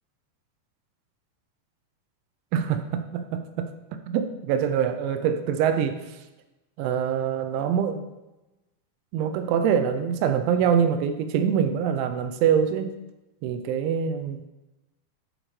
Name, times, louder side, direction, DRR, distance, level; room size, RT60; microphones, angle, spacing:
voice 1, 2.5-3.7 4.1-6.2 6.8-8.1 9.1-13.0 13.4-14.5, right 8 dB, 85° right, 8 dB, 2.9 m, -24 dB
9.8 x 5.2 x 3.1 m, 1.0 s
omnidirectional pair, 5.4 m